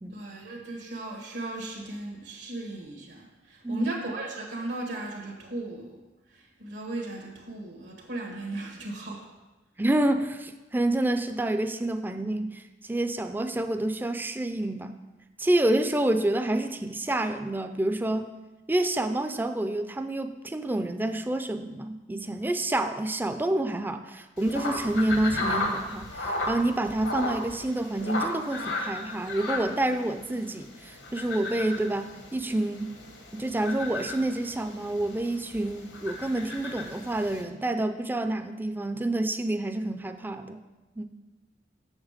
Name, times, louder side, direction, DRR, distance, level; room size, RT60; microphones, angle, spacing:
voice 1, 0.1-6.0 6.3-9.2, right 2 dB, 80° right, 0 dB, 1.5 m, -36 dB
voice 2, 9.8-14.9 15.4-18.3 18.7-32.9 33.3-40.6 41.0-41.1, right 1 dB, 10° right, 8 dB, 0.4 m, -28 dB
sound 1, 24.4-37.4, left 2 dB, 75° left, 1.3 m, -35 dB
7.3 x 6.6 x 5.0 m, 1.1 s
head